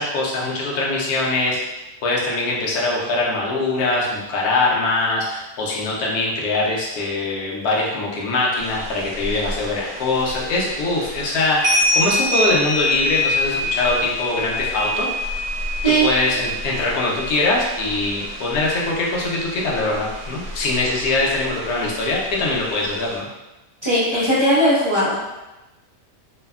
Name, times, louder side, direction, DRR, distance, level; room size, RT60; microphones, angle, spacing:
voice 1, 0.0-1.7 2.0-15.1 16.0-23.3, left 2 dB, 85° left, -3 dB, 1.2 m, -22 dB
sound 1, 8.6-23.2, left 1 dB, 80° right, 1.2 m, -27 dB
voice 2, 23.8-25.2, right 1 dB, 35° right, -11 dB, 0.4 m, -18 dB
3.1 x 2.1 x 2.3 m, 1.0 s
omnidirectional pair, 1.6 m